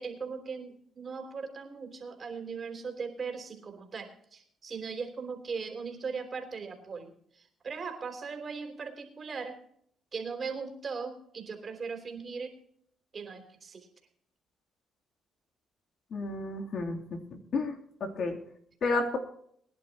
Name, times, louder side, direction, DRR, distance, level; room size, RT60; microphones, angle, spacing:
voice 1, 0.0-9.6 10.1-12.5 13.1-13.9, right 5 dB, 45° right, 5 dB, 3.3 m, -39 dB
voice 2, 16.1-17.2 17.5-17.7 18.0-18.4 18.8-19.2, left 3 dB, 65° left, 1 dB, 3.1 m, -31 dB
22.0 x 11.0 x 3.0 m, 0.67 s
cardioid pair, 90°, 0 cm